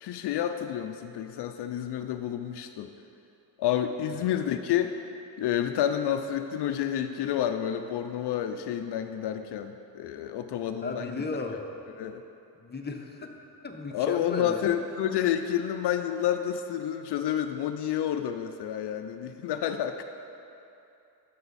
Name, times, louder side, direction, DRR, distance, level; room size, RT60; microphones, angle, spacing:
voice 1, 0.0-2.9 3.6-5.0 5.4-11.4 11.9-12.2 13.9-20.0, left 10 dB, 80° left, 7 dB, 0.5 m, -29 dB
voice 2, 10.8-11.6 12.6-13.3 13.6-14.7, left 3 dB, 25° left, 2 dB, 0.9 m, -35 dB
11.5 x 6.9 x 4.1 m, 2.8 s
cardioid pair, 95°, 40 cm